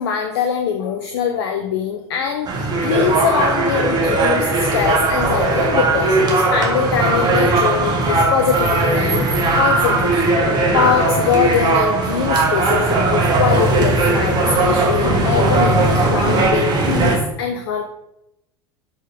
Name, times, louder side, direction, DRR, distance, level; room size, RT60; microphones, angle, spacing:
voice 1, 0.0-10.3 10.7-17.8, left 7 dB, 60° left, 5 dB, 0.6 m, -22 dB
sound 1, 2.4-17.2, right 2 dB, 30° right, 1.6 m, -18 dB
6.3 x 5.2 x 3.6 m, 0.84 s
figure-of-eight pair, 75°, 14 cm